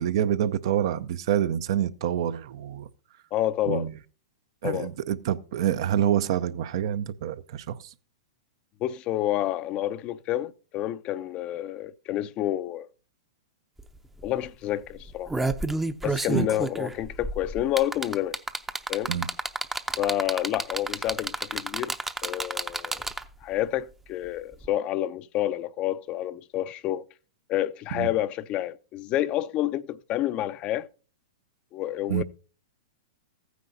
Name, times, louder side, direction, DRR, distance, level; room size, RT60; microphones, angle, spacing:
voice 1, 0.0-2.9 3.7-3.9 4.6-7.8 16.3-16.5 19.1-19.3 27.9-28.1 32.1-32.2, right 10 dB, 60° right, 0.6 m, -27 dB
voice 2, 3.3-3.9 4.6-4.9 8.8-12.9 14.2-15.3 16.0-18.4 18.9-19.1 20.0-21.9 22.2-23.1 23.4-27.0 27.5-30.9 31.7-32.2, left 13 dB, 35° left, 0.5 m, -29 dB
sound 1, 13.8-13.9 14.2-14.4 15.0-23.4 24.6-24.7, right 2 dB, 10° right, 0.6 m, -30 dB
14.5 x 9.4 x 2.7 m
hypercardioid pair, 115°, 3 cm